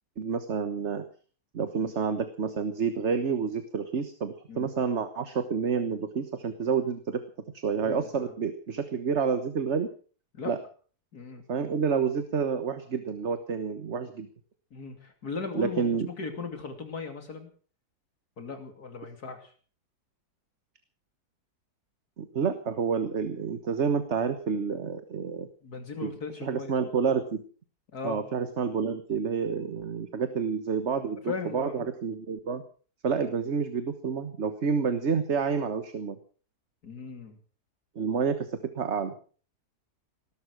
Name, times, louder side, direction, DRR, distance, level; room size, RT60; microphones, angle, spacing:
voice 1, 0.2-1.0 1.5-7.2 7.6-9.9 10.4-10.6 11.5-14.3 15.5-16.1 22.2-25.5 26.0-26.1 26.4-27.4 28.0-32.6 33.0-36.2 37.9-39.1, right 6 dB, 45° right, 9 dB, 1.5 m, -29 dB
voice 2, 7.8-8.3 10.3-10.5 11.1-11.4 14.7-17.5 18.4-19.5 25.6-26.9 27.9-28.2 31.3-31.9 36.8-37.4, left 4 dB, 70° left, 6 dB, 3.2 m, -38 dB
19.5 x 12.0 x 6.3 m, 0.43 s
omnidirectional pair, 1.7 m